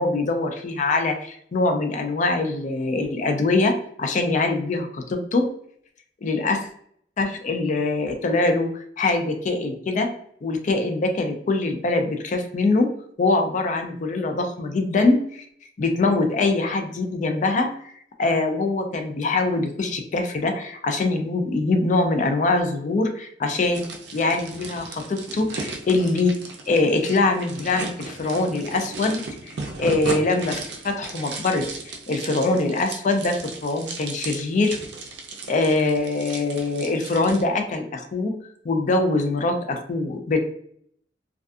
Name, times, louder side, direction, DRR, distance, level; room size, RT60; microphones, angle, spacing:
voice 1, 0.0-5.5 6.2-6.7 7.2-10.1 10.4-15.5 15.8-17.9 18.2-29.2 29.8-34.8 35.5-40.4, left 3 dB, 40° left, 5 dB, 0.4 m, -23 dB
sound 1, 23.7-37.4, right 3 dB, 65° right, 0.5 m, -36 dB
2.3 x 2.3 x 2.5 m, 0.66 s
head